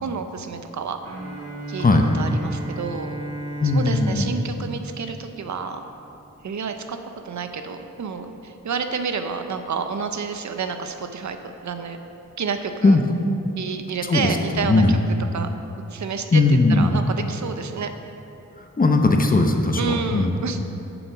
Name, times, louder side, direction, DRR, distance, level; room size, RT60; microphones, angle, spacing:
voice 1, 0.0-1.0 1.7-1.9 2.1-3.2 3.7-5.8 6.4-7.0 7.2-11.4 11.6-12.0 12.4-13.0 13.5-15.0 15.3-15.5 15.9-16.4 16.7-17.9 19.8-20.6, right 5 dB, 70° right, 7 dB, 0.6 m, -29 dB
Bowed string instrument, 1.0-5.9, equal, 50° right, 1.4 m, -35 dB
voice 2, 3.6-4.3 12.8-13.0 14.1-14.4 14.6-15.0 16.3-17.0 18.6-19.8 20.1-20.3, left 2 dB, 30° left, 3 dB, 0.7 m, -18 dB
7.1 x 7.1 x 6.0 m, 2.9 s
wide cardioid pair, 155°, 30 cm